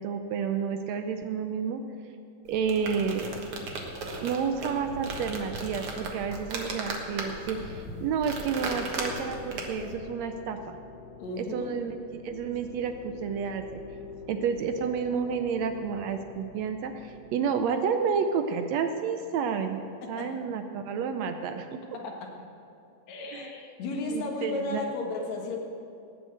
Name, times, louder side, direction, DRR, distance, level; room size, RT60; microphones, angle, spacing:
voice 1, 0.0-1.8 2.5-3.3 4.2-10.8 11.3-12.0 12.2-13.8 14.3-19.8 20.1-21.8 23.3-23.5 24.0-24.9, right 6 dB, 75° right, 7 dB, 1.6 m, -30 dB
sound 1, 2.5-9.9, right 2 dB, 55° right, 2.0 m, -36 dB
sound 2, 7.2-17.3, left 3 dB, 90° left, 3.2 m, -46 dB
voice 2, 11.2-11.7 20.2-20.3 22.0-22.3 23.1-25.6, left 2 dB, 65° left, 0 dB, 2.8 m, -34 dB
18.0 x 6.3 x 7.9 m, 2.5 s
omnidirectional pair, 3.6 m